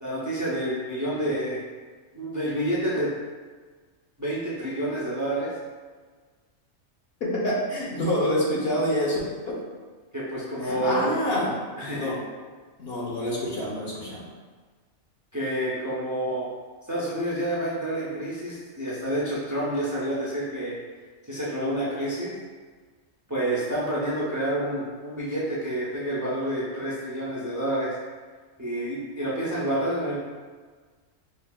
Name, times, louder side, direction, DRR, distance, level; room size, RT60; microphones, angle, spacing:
voice 1, 0.0-1.6 2.1-3.1 4.2-5.5 10.1-11.2 11.8-12.1 15.3-16.5 16.9-20.8 21.2-22.3 23.3-27.9 28.6-30.2, right 1 dB, 25° right, -7 dB, 0.3 m, -28 dB
voice 2, 7.2-9.2 9.5-9.6 10.6-11.5 11.9-12.2 12.8-14.3, equal, 55° left, -5 dB, 1.0 m, -27 dB
5.2 x 2.6 x 2.3 m, 1.5 s
omnidirectional pair, 1.4 m